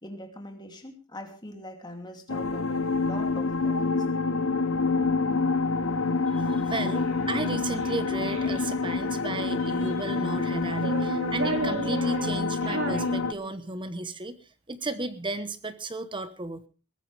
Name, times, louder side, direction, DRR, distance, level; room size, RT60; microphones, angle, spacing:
voice 1, 0.0-4.3, left 1 dB, 20° left, 4 dB, 2.7 m, -42 dB
sound 1, 2.3-13.3, left 3 dB, 65° left, 1.0 m, -27 dB
voice 2, 6.3-14.4 14.7-16.7, right 2 dB, 20° right, 12 dB, 1.0 m, -34 dB
Child speech kid speaking, 7.0-8.6 9.4-10.3 10.7-13.8, right 3 dB, 60° right, 3.2 m, -35 dB
21.5 x 14.0 x 3.4 m, 0.34 s
head